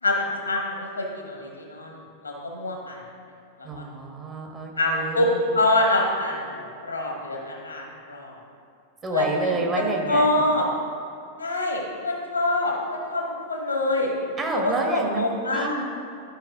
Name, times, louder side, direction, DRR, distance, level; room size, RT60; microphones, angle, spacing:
voice 1, 0.0-3.0 3.6-3.8 4.8-8.4 9.1-10.7 11.4-14.1 14.5-14.9 15.1-15.8, left 2 dB, 80° left, 0 dB, 1.3 m, -25 dB
voice 2, 3.6-5.4 9.0-10.4 14.4-15.8, right 2 dB, 20° right, 1 dB, 1.3 m, -29 dB
12.0 x 5.2 x 3.6 m, 2.4 s
figure-of-eight pair, 90°, 0 cm